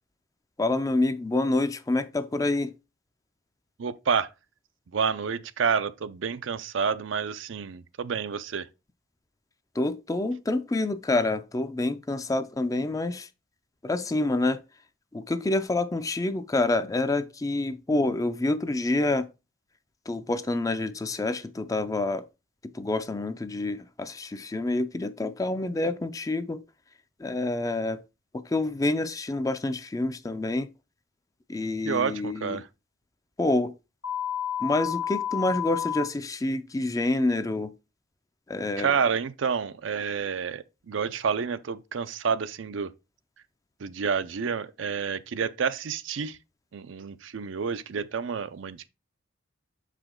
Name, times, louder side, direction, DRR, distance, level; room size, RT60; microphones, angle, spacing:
voice 1, 0.6-2.7 9.8-13.3 13.8-14.6 15.1-19.3 20.1-22.3 22.6-26.6 27.2-28.0 28.3-30.7 31.5-32.6 33.4-33.7 34.6-37.7 38.5-38.9, left 2 dB, 15° left, 0.4 m, -27 dB
voice 2, 3.8-4.3 4.9-8.7 31.8-32.7 38.8-42.9 43.8-46.4 46.7-48.9, right 6 dB, 70° right, 0.5 m, -29 dB
sound 1, 34.0-36.0, left 10 dB, 90° left, 1.0 m, -30 dB
6.7 x 5.0 x 3.7 m
head